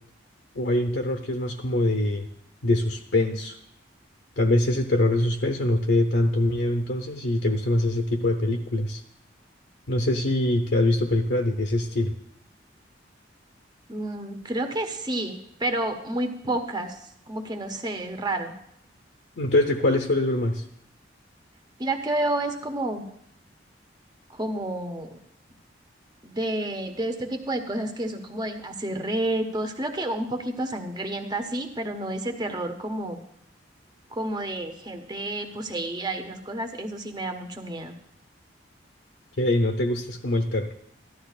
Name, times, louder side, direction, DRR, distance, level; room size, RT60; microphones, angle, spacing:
voice 1, 0.5-2.3 2.6-3.6 4.4-9.0 9.9-12.1 19.4-20.6 39.4-40.7, left 1 dB, 70° left, 3 dB, 0.8 m, -23 dB
voice 2, 13.9-17.0 17.3-18.5 21.8-23.0 24.3-25.2 26.2-33.2 34.1-37.9, right 1 dB, 20° right, 6 dB, 0.9 m, -30 dB
14.0 x 12.0 x 2.4 m, 0.72 s
head